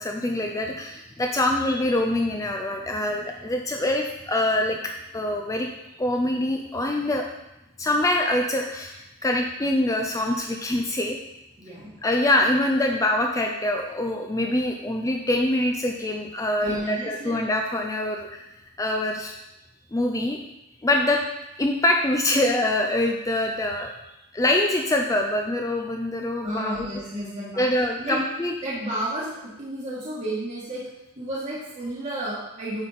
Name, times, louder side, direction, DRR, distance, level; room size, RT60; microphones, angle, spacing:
voice 1, 0.0-5.7 6.0-7.2 7.8-11.2 12.0-18.4 18.8-19.3 19.9-20.4 20.8-21.2 21.6-23.9 24.3-26.9 27.6-28.5, left 1 dB, 15° left, 2 dB, 0.4 m, -24 dB
voice 2, 11.6-12.0 16.6-17.4 26.4-27.7 28.0-28.2 28.6-30.9 31.2-32.8, right 1 dB, 35° right, -7 dB, 1.4 m, -32 dB
8.7 x 4.2 x 4.1 m, 0.91 s
head